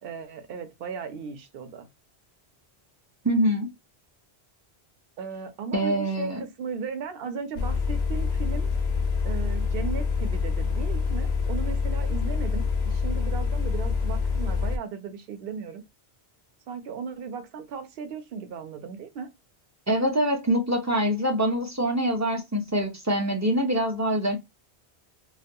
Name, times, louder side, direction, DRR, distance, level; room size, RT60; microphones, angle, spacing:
voice 1, 0.0-1.9 5.2-8.7 9.2-15.8 16.7-19.3, right 6 dB, 65° right, 0.8 m, -36 dB
voice 2, 3.2-3.7 5.7-6.4 19.9-24.4, equal, 25° right, 0.4 m, -24 dB
sound 1, 7.6-14.8, left 5 dB, 50° left, 0.7 m, -26 dB
2.4 x 2.2 x 2.6 m
omnidirectional pair, 1.1 m